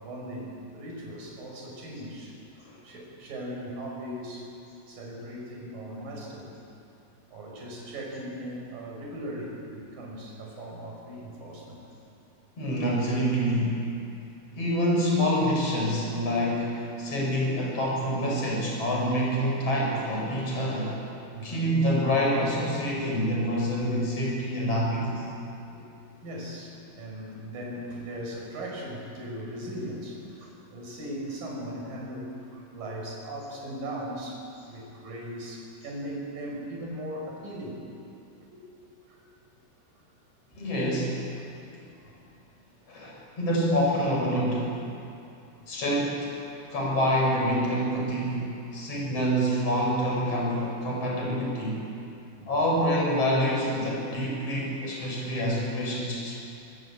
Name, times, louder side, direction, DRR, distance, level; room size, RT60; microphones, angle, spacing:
voice 1, 0.0-2.3 2.7-4.5 4.9-6.5 7.3-11.8 20.7-21.7 25.7-25.8 26.2-37.8 38.5-38.6 39.1-39.2 41.4-41.6 42.0-42.2 45.6-45.7 48.9-49.3 52.4-52.7, equal, 45° right, -1 dB, 7.0 m, -39 dB
voice 2, 12.6-13.9 14.6-21.0 21.4-25.2 40.5-41.2 42.9-44.9 45.7-46.3 46.7-51.8 52.5-56.4, equal, 30° left, -2 dB, 6.9 m, -26 dB
25.5 x 20.5 x 8.8 m, 2.7 s
omnidirectional pair, 5.7 m